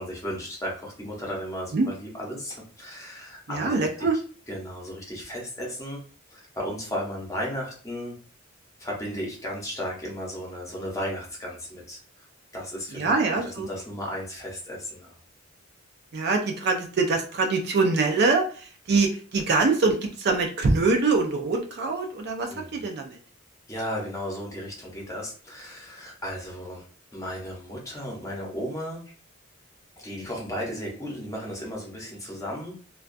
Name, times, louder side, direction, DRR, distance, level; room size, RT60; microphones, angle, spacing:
voice 1, 0.0-4.1 4.5-6.0 6.3-8.2 8.8-12.0 12.5-15.1 22.5-22.8 23.7-26.8 27.1-29.0 30.0-32.7, equal, 15° left, -2 dB, 0.7 m, -35 dB
voice 2, 3.5-4.2 12.9-13.7 16.1-23.2, right 3 dB, 55° right, 3 dB, 0.4 m, -24 dB
2.3 x 2.2 x 2.5 m, 0.40 s
head